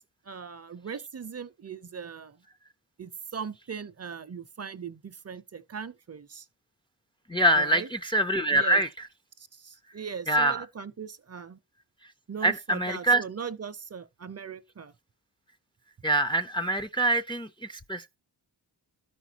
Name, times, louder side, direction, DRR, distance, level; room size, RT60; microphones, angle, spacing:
voice 1, 0.3-2.4 3.0-6.5 7.6-7.9 8.5-8.8 9.4-11.6 12.3-14.9, right 6 dB, 35° right, 0.5 m, -39 dB
voice 2, 7.3-9.1 10.3-10.6 12.4-13.2 16.0-18.2, right 1 dB, 15° left, 0.4 m, -25 dB
13.0 x 5.1 x 2.8 m
wide cardioid pair, 85°, 42 cm